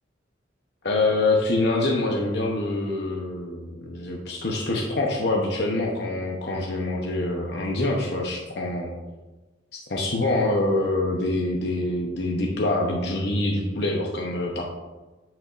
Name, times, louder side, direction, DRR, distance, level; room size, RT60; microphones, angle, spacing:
voice 1, 0.8-8.9 9.7-14.6, left 2 dB, 55° left, -1 dB, 0.8 m, -25 dB
9.2 x 5.3 x 2.5 m, 1.2 s
head